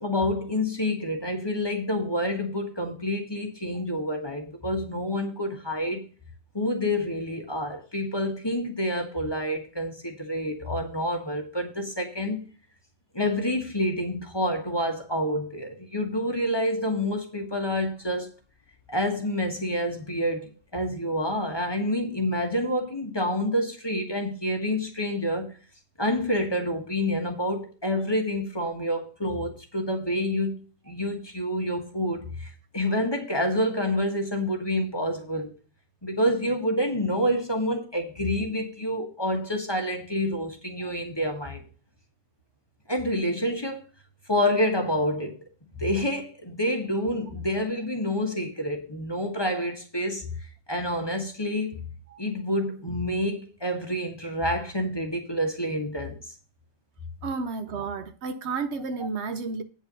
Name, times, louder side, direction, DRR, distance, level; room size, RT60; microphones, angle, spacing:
voice 1, 0.0-6.0 6.5-12.4 13.1-18.3 18.9-25.5 26.0-35.5 36.0-41.6 42.9-43.8 44.3-45.4 45.8-50.3 50.7-51.8 52.2-56.2, left 1 dB, 20° left, 1.4 m, -28 dB
voice 2, 57.2-59.6, right 4 dB, 65° right, 1.0 m, -32 dB
9.0 x 4.5 x 6.8 m
omnidirectional pair, 1.3 m